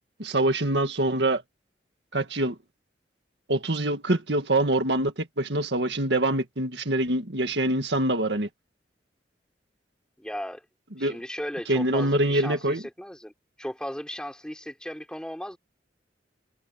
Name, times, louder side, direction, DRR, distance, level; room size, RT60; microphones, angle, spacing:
voice 1, 0.2-1.4 2.1-2.6 3.5-8.5 11.0-11.2 11.7-12.8, right 1 dB, 70° right, 2.0 m, -25 dB
voice 2, 10.2-10.6 11.0-13.3 13.6-15.6, equal, 5° left, 5.6 m, -36 dB
head